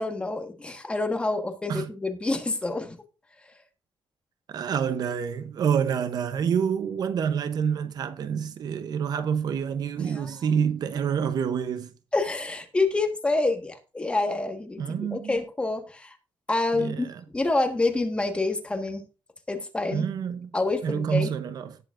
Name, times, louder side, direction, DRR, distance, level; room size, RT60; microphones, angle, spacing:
voice 1, 0.0-3.0 10.0-10.4 12.1-16.1 16.5-17.1 17.3-19.0 19.5-20.0 20.5-21.3, left 2 dB, 15° left, 1.4 m, -27 dB
voice 2, 4.5-11.9 14.8-15.4 16.7-17.2 19.9-20.5 20.8-21.8, right 7 dB, 50° right, 0.7 m, -27 dB
18.0 x 7.1 x 2.5 m
cardioid pair, 165°, 8 cm